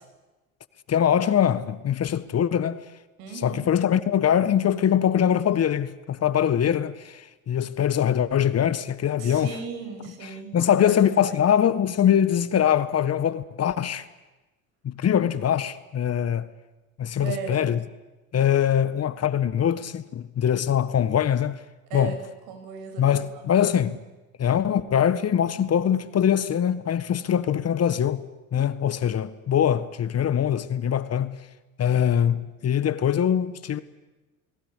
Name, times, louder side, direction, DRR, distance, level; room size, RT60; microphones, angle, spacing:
voice 1, 0.9-2.8 3.3-9.6 10.2-14.0 14.8-16.5 17.0-17.8 18.3-21.6 21.9-22.2 23.0-24.0 24.4-28.2 28.5-31.4 31.8-33.8, left 9 dB, 40° left, 1.5 m, -23 dB
voice 2, 3.2-3.7 9.2-10.5 10.8-10.9 11.3-11.4 17.2-17.7 21.9-22.2 22.5-23.4, right 6 dB, 65° right, 7.3 m, -36 dB
29.5 x 21.0 x 8.4 m
hypercardioid pair, 65°, 40 cm